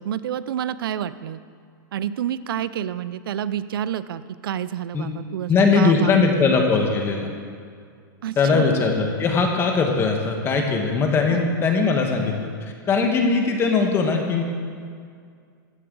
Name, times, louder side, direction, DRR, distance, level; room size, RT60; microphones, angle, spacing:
voice 1, 0.0-1.4 1.9-6.4 8.2-8.7 11.3-11.5, right 10 dB, 90° right, 15 dB, 0.4 m, -29 dB
voice 2, 5.5-7.3 8.4-14.4, left 4 dB, 20° left, 3 dB, 1.2 m, -20 dB
14.5 x 7.9 x 3.8 m, 2.2 s
supercardioid pair, 145°, 12 cm